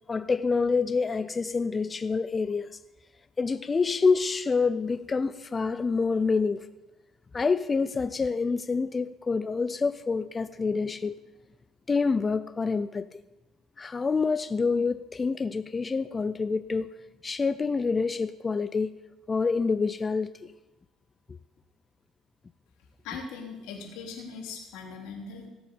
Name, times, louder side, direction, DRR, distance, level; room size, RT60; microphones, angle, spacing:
voice 1, 0.1-2.8 3.4-6.7 7.3-11.1 11.9-13.2 13.8-16.9 17.2-18.9 19.3-20.5, left 4 dB, 25° left, 0.4 m, -27 dB
voice 2, 23.0-25.5, left 5 dB, 85° left, 3.3 m, -40 dB
17.0 x 7.9 x 6.9 m
cardioid pair, 110°, 0 cm